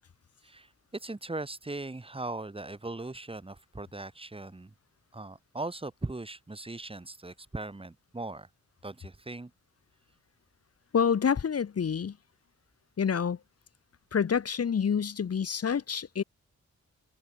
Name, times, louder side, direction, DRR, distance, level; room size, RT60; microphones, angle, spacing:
voice 1, 0.4-4.7 5.1-8.5 8.8-9.5, right 2 dB, 20° right, 3.8 m, -39 dB
voice 2, 10.9-12.2 13.0-13.4 14.1-16.2, left 7 dB, 50° left, 1.8 m, -27 dB
open air
wide cardioid pair, 115°, 31 cm